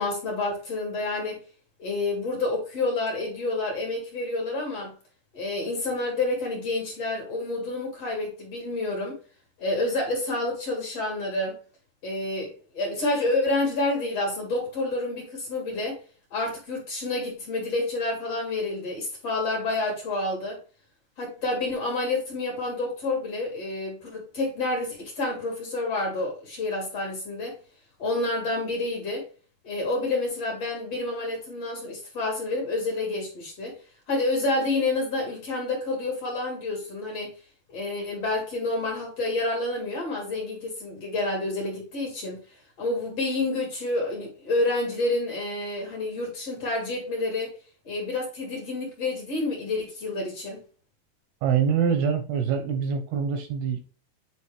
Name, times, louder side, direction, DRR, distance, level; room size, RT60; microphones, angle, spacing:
voice 1, 0.0-1.4 1.8-4.9 5.3-9.2 9.6-11.6 12.0-16.0 16.3-20.6 21.2-27.6 28.0-29.2 29.6-33.7 34.1-37.3 37.7-42.4 42.8-47.5 47.8-50.6, left 2 dB, 45° left, 2.3 m, -29 dB
voice 2, 51.4-53.8, right 7 dB, 75° right, 2.5 m, -25 dB
8.7 x 4.4 x 3.2 m
omnidirectional pair, 5.3 m